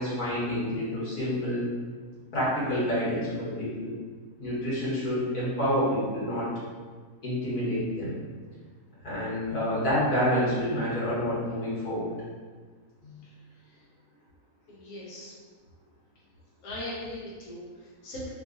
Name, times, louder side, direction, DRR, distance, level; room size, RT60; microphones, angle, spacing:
voice 1, 0.0-1.6 2.3-3.9 4.4-6.5 7.2-8.1 9.0-12.1 13.0-13.2, equal, 90° left, -10 dB, 2.0 m, -28 dB
voice 2, 14.7-15.3 16.6-18.3, left 1 dB, 65° left, -5 dB, 1.1 m, -40 dB
3.8 x 2.5 x 3.8 m, 1.5 s
omnidirectional pair, 1.6 m